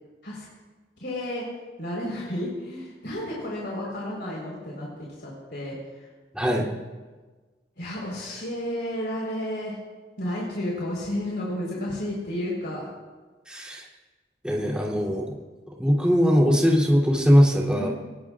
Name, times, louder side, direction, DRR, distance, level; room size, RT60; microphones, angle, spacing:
voice 1, 1.0-1.4 1.8-6.1 7.8-9.8 10.2-12.9 17.7-17.9, left 1 dB, 70° left, -4 dB, 4.4 m, -32 dB
voice 2, 6.3-6.7 13.5-13.8 14.4-15.4 15.8-17.9, equal, 5° right, -4 dB, 3.2 m, -20 dB
23.5 x 20.5 x 2.5 m, 1.3 s
head